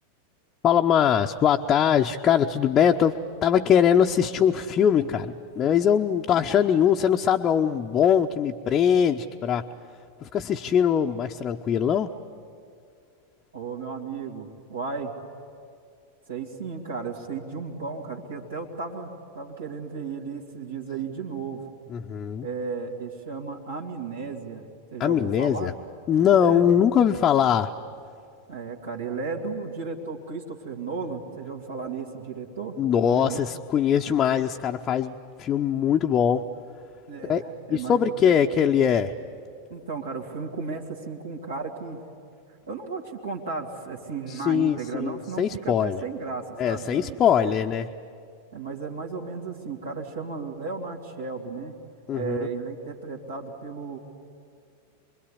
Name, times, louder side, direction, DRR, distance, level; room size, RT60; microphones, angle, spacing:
voice 1, 0.6-9.6 10.2-12.1 21.9-22.5 25.0-25.7 26.1-27.7 32.8-36.4 37.3-37.4 37.7-39.1 44.3-46.0 46.6-47.9 52.1-52.4, left 8 dB, 30° left, 2 dB, 0.8 m, -22 dB
voice 2, 13.5-15.1 16.3-21.7 22.4-25.7 26.4-26.7 28.5-32.8 33.1-33.4 37.1-38.3 39.7-42.0 42.7-47.6 48.5-51.7 52.1-54.0, right 4 dB, 70° right, -1 dB, 2.5 m, -34 dB
27.0 x 22.0 x 10.0 m, 2.3 s
figure-of-eight pair, 90°, 0 cm